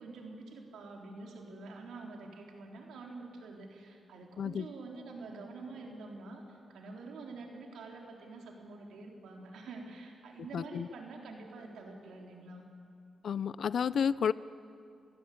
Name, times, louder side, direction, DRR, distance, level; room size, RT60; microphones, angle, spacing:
voice 1, 0.0-12.7, right 3 dB, 85° right, 1 dB, 3.8 m, -47 dB
voice 2, 10.5-10.9 13.2-14.3, left 7 dB, 65° left, 18 dB, 0.5 m, -31 dB
28.5 x 16.0 x 8.6 m, 2.5 s
cardioid pair, 80°, 0 cm